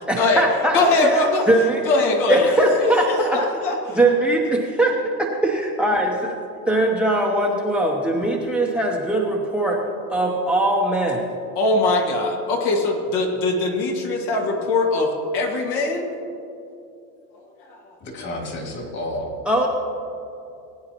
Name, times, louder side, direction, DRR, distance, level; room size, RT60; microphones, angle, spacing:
voice 1, 0.1-1.8 2.3-3.4 3.9-4.9 5.2-6.3 6.6-9.8 10.1-11.2 19.5-19.7, right 1 dB, 5° right, 0 dB, 0.8 m, -21 dB
voice 2, 0.7-1.5 1.9-4.0 11.6-16.1 17.7-17.8, left 2 dB, 65° left, 1 dB, 2.1 m, -21 dB
voice 3, 18.0-19.4, left 1 dB, 40° left, -1 dB, 2.8 m, -30 dB
20.0 x 9.5 x 3.0 m, 2.7 s
supercardioid pair, 135°, 44 cm